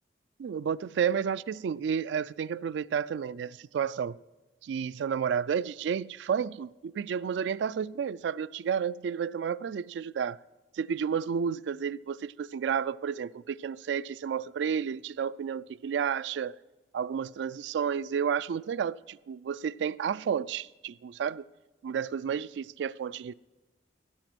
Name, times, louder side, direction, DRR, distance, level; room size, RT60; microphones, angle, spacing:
voice 1, 0.4-4.2 4.6-10.4 10.7-16.6 16.9-21.4 21.8-23.3, right 7 dB, 80° right, 0.3 m, -31 dB
15.5 x 6.1 x 5.9 m
head